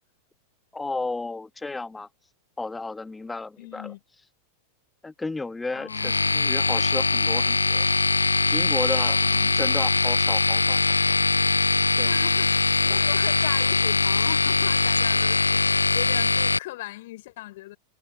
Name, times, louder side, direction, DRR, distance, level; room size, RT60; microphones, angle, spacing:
voice 1, 0.7-2.1 2.6-3.9 5.0-7.9 8.5-9.2 9.5-10.8 11.1-11.2 12.0-12.1 12.9-13.0, left 3 dB, 10° left, 1.9 m, -33 dB
voice 2, 3.6-4.0 5.7-6.4 9.1-9.8 12.1-17.8, left 18 dB, 55° left, 4.3 m, -39 dB
sound 1, 5.9-16.6, left 3 dB, 80° left, 0.6 m, -22 dB
figure-of-eight pair, 90°, 0 cm